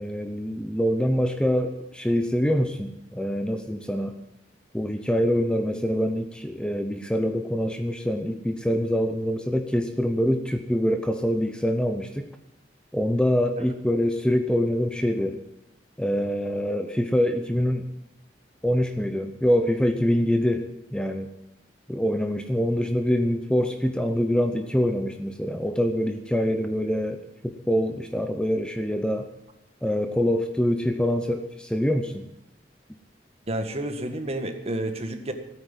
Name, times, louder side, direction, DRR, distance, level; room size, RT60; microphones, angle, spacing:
voice 1, 0.0-4.1 4.7-12.3 12.9-15.4 16.0-17.8 18.6-21.3 21.9-29.3 29.8-32.3, equal, 5° left, 7 dB, 0.7 m, -25 dB
voice 2, 33.5-35.3, right 1 dB, 35° right, 7 dB, 1.7 m, -30 dB
16.0 x 9.3 x 9.0 m, 0.86 s
head